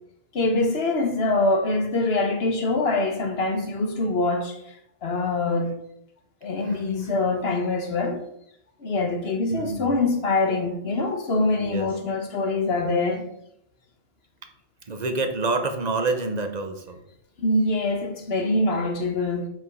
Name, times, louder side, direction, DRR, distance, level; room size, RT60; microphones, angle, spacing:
voice 1, 0.3-4.6 5.0-5.7 6.4-8.2 8.8-13.2 17.4-19.5, left 2 dB, 60° left, 1.4 m, -24 dB
voice 2, 9.5-10.0 11.6-11.9 14.9-17.0, right 3 dB, 40° right, 0.9 m, -27 dB
5.7 x 5.3 x 5.4 m
omnidirectional pair, 1.2 m